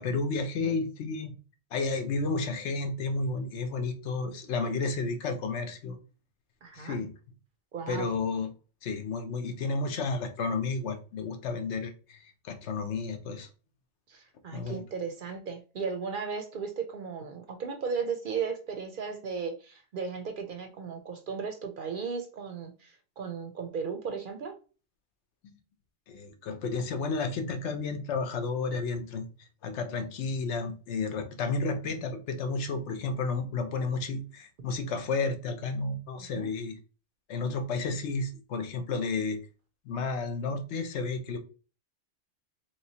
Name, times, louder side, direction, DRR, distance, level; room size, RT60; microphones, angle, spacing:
voice 1, 0.0-1.3 1.7-6.0 6.7-7.1 7.9-8.5 8.8-13.5 14.5-14.8 25.4-25.5 26.1-29.3 29.6-36.8 37.3-39.4 39.8-41.4, left 3 dB, 80° left, 6 dB, 1.0 m, -32 dB
voice 2, 6.6-7.0 7.7-8.1 14.1-24.5 36.3-36.5, right 5 dB, 60° right, 5 dB, 0.6 m, -36 dB
3.2 x 2.9 x 2.8 m, 0.35 s
omnidirectional pair, 1.2 m